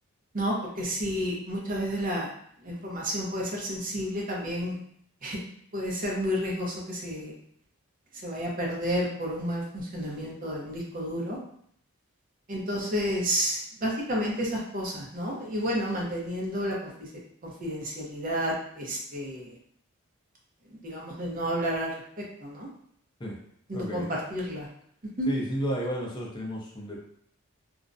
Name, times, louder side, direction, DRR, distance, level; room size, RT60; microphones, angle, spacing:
voice 1, 0.3-2.3 2.6-4.7 5.2-5.4 5.7-7.3 8.2-11.4 12.5-17.1 17.4-19.6 20.7-21.9 22.4-22.7 23.7-24.0 24.3-24.7 25.2-25.3, equal, 40° right, -3 dB, 0.6 m, -31 dB
voice 2, 23.7-24.1 25.3-27.0, equal, 20° left, -3 dB, 0.5 m, -32 dB
2.4 x 2.0 x 2.5 m, 0.66 s
head